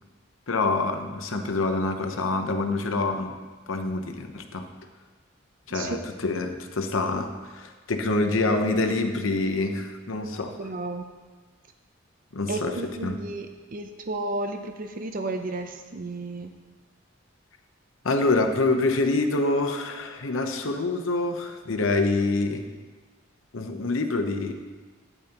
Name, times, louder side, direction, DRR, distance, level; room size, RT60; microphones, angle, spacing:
voice 1, 0.5-3.3 3.7-4.7 5.7-10.7 12.3-12.8 13.0-13.2 18.0-22.7 23.5-24.5, left 2 dB, 80° left, 5 dB, 0.9 m, -26 dB
voice 2, 10.6-11.1 12.5-16.5, right 2 dB, 45° right, 6 dB, 0.5 m, -33 dB
12.0 x 9.2 x 2.9 m, 1.3 s
head